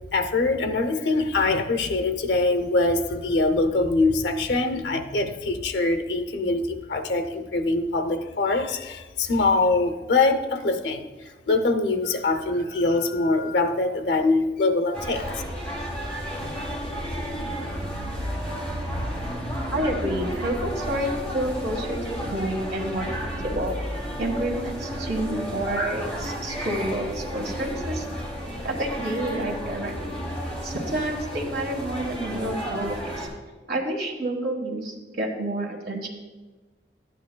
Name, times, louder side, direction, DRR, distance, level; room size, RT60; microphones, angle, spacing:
voice 1, 0.1-15.4, left 3 dB, 75° left, 8 dB, 0.7 m, -23 dB
sound 1, 14.9-33.3, equal, 5° left, 2.1 m, -32 dB
voice 2, 19.7-23.8 24.2-28.0 28.6-30.2 30.6-33.3 33.7-36.1, right 1 dB, 65° right, 1 dB, 1.5 m, -29 dB
12.0 x 9.1 x 2.2 m, 1.2 s
head